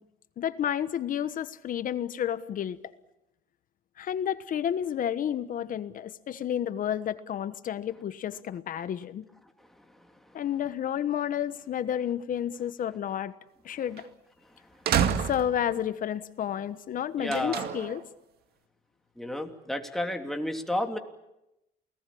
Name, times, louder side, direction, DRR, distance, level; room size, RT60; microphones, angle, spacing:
voice 1, 0.4-2.8 4.0-9.3 10.3-13.3 13.6-14.0 15.2-18.1, left 10 dB, 55° left, 14 dB, 1.3 m, -31 dB
sound 1, 14.0-14.1 14.9-15.8 17.3-18.0, right 8 dB, 70° right, 2.1 m, -28 dB
voice 2, 17.2-17.7 19.2-21.0, left 1 dB, ahead, 4 dB, 3.0 m, -31 dB
28.5 x 19.0 x 8.6 m, 0.90 s
cardioid pair, 110°, 17 cm